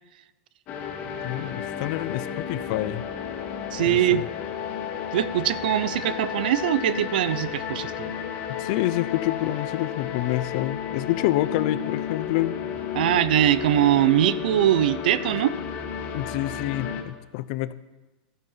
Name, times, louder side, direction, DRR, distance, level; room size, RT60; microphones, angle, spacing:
sound 1, 0.7-17.0, left 8 dB, 35° left, 1.9 m, -32 dB
voice 1, 1.2-3.0 3.8-4.2 8.5-12.5 16.1-17.7, left 15 dB, 55° left, 15 dB, 0.6 m, -27 dB
voice 2, 3.7-4.2 5.1-8.2 12.9-15.5, right 11 dB, 80° right, 17 dB, 0.6 m, -22 dB
14.5 x 9.5 x 5.7 m, 1.1 s
supercardioid pair, 160°, 5 cm